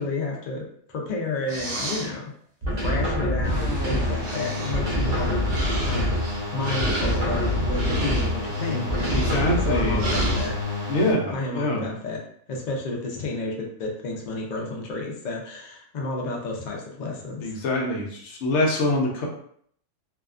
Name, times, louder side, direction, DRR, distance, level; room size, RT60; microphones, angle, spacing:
voice 1, 0.0-2.2 2.8-6.2 6.5-10.5 10.8-10.9 11.3-12.2 12.5-17.6, left 2 dB, 90° left, 0 dB, 0.4 m, -31 dB
sound 1, 1.5-2.1 3.8-3.9 4.2-10.5, right 2 dB, 85° right, 1.2 m, -32 dB
sound 2, 2.6-4.3 4.7-6.4 6.8-8.5 8.9-10.6, equal, 65° right, 0.3 m, -26 dB
sound 3, 3.4-11.1, left 3 dB, 20° left, 0.7 m, -31 dB
voice 2, 8.6-10.0 10.8-11.8 17.4-19.3, left 1 dB, 60° left, -2 dB, 0.9 m, -25 dB
2.7 x 2.3 x 2.4 m, 0.63 s
omnidirectional pair, 1.5 m